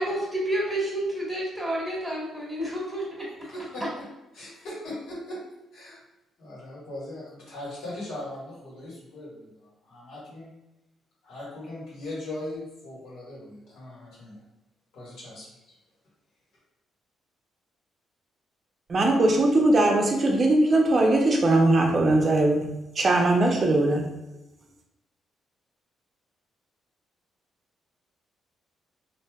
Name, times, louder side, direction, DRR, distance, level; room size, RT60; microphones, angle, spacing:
voice 1, 0.0-3.2, right 1 dB, 5° left, -6 dB, 1.2 m, -29 dB
voice 2, 3.4-4.1 4.3-5.4 5.7-6.0 6.4-9.5 9.8-10.5 11.2-14.4 14.9-15.5, left 1 dB, 80° left, -7 dB, 1.4 m, -39 dB
voice 3, 18.9-22.7 23.0-24.1, right 2 dB, 40° right, 2 dB, 0.6 m, -20 dB
3.2 x 2.6 x 2.3 m, 0.96 s
cardioid pair, 90°, 0 cm